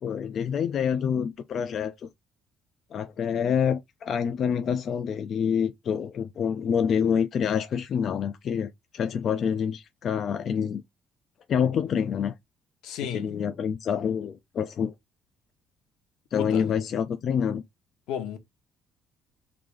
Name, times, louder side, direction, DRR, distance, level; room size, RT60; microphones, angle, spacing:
voice 1, 0.0-2.1 2.9-10.8 11.5-12.3 13.1-14.9 16.3-17.6, left 7 dB, 40° left, 0.5 m, -27 dB
voice 2, 12.8-13.3 16.4-16.6 18.1-18.4, left 9 dB, 80° left, 1.4 m, -32 dB
3.9 x 2.8 x 4.9 m
cardioid pair, 170°, 0 cm